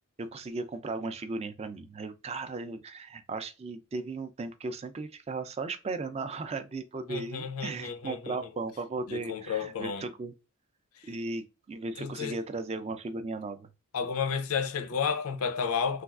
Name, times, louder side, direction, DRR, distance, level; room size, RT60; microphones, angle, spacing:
voice 1, 0.2-10.3 11.0-13.7, right 3 dB, 30° right, 0.3 m, -36 dB
voice 2, 7.1-8.5 9.1-10.1 11.0-11.1 12.0-12.4 13.9-16.0, left 6 dB, 85° left, 0.5 m, -32 dB
3.3 x 2.3 x 2.3 m
head